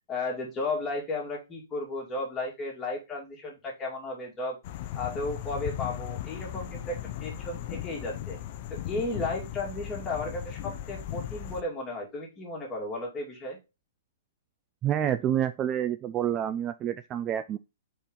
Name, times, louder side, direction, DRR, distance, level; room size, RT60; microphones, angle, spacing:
voice 1, 0.1-4.6 4.9-8.4 8.7-13.6, left 2 dB, 15° left, 2.4 m, -34 dB
sound 1, 4.6-11.6, left 12 dB, 40° left, 0.6 m, -37 dB
voice 2, 14.8-17.6, right 10 dB, 20° right, 0.3 m, -28 dB
4.5 x 4.3 x 5.1 m
hypercardioid pair, 150°, 0 cm